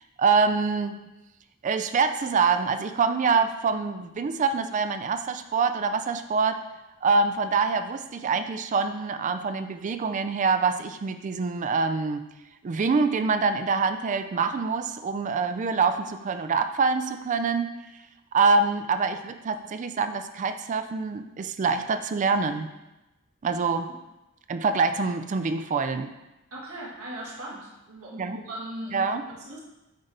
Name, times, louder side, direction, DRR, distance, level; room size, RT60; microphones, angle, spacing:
voice 1, 0.2-1.0 1.6-6.6 7.0-12.2 12.6-17.7 18.3-22.7 23.4-23.9 24.5-26.1 28.2-28.4 28.9-29.2, right 4 dB, 35° right, 9 dB, 0.3 m, -25 dB
voice 2, 26.5-29.6, right 1 dB, 80° right, -4 dB, 1.6 m, -39 dB
8.1 x 3.4 x 3.8 m, 0.99 s
head